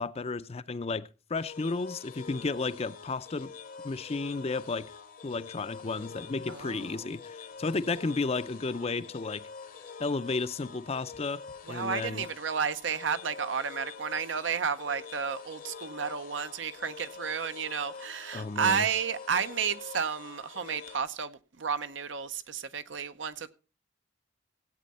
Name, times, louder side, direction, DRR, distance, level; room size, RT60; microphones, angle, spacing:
voice 1, 0.0-3.5 3.8-4.9 5.2-9.5 10.0-12.2 18.3-18.8, left 3 dB, 35° left, 0.5 m, -33 dB
sound 1, 1.4-21.0, left 5 dB, 50° left, 0.9 m, -46 dB
voice 2, 6.5-7.1 11.7-23.5, right 6 dB, 75° right, 0.8 m, -32 dB
16.5 x 8.5 x 4.2 m
head